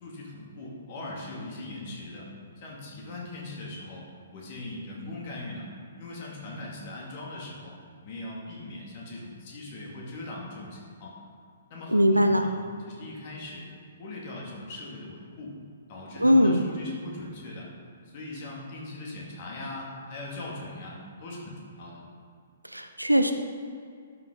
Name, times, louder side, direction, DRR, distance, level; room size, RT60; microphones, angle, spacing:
voice 1, 0.0-2.3 2.6-5.7 6.0-11.1 11.7-12.6 12.9-13.6 14.0-15.6 15.9-17.7 18.0-22.0, left 2 dB, 40° left, -3 dB, 2.4 m, -40 dB
voice 2, 11.9-12.4 16.2-16.7 22.7-23.3, equal, 90° right, 7 dB, 0.7 m, -20 dB
12.0 x 5.9 x 3.9 m, 2.3 s
figure-of-eight pair, 125°, 0 cm